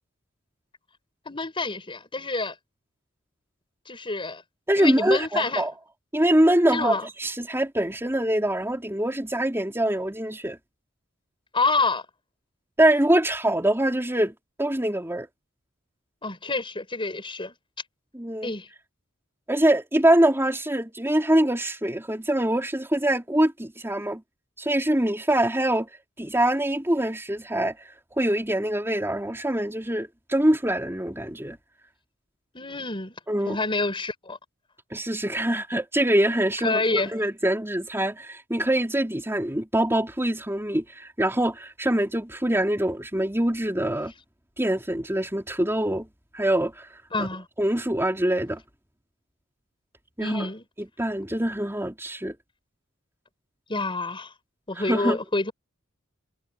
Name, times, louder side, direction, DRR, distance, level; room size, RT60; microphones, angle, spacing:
voice 1, 1.3-2.6 3.9-4.4 4.8-5.6 6.7-7.1 11.5-12.0 16.2-17.5 18.4-18.7 32.5-33.2 33.5-34.4 36.6-37.1 47.1-47.5 50.2-50.7 53.7-54.3 54.7-55.5, left 3 dB, 25° left, 5.4 m, -27 dB
voice 2, 4.7-5.7 6.1-10.6 12.8-14.3 14.6-15.3 18.1-18.5 19.5-24.2 24.6-25.9 26.2-27.8 28.1-31.6 33.3-33.6 34.9-44.1 44.6-46.1 46.3-47.3 47.6-48.6 50.2-50.5 51.0-52.4 54.9-55.2, right 1 dB, 10° right, 3.6 m, -24 dB
head